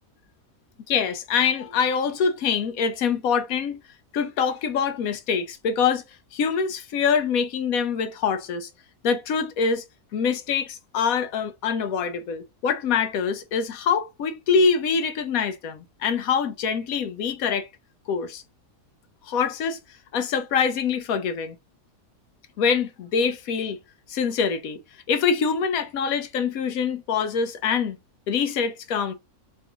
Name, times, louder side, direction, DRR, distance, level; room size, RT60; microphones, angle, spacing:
voice 1, 0.9-3.8 4.1-6.0 6.3-8.7 9.0-9.8 10.1-17.7 18.1-18.4 19.2-19.8 20.1-21.6 22.6-23.8 24.1-24.8 25.1-28.0 28.3-29.1, left 6 dB, 70° left, 1.1 m, -24 dB
4.0 x 2.7 x 3.4 m
omnidirectional pair, 1.6 m